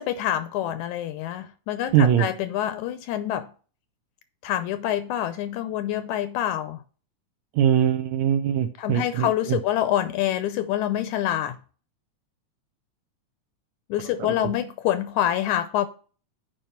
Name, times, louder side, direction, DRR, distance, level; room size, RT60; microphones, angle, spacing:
voice 1, 0.0-3.5 4.4-6.8 8.8-11.6 13.9-15.9, left 11 dB, 80° left, 1.8 m, -26 dB
voice 2, 1.9-2.3 7.6-9.6 14.4-14.5, right 9 dB, 80° right, 1.6 m, -21 dB
8.9 x 5.1 x 4.4 m
omnidirectional pair, 3.7 m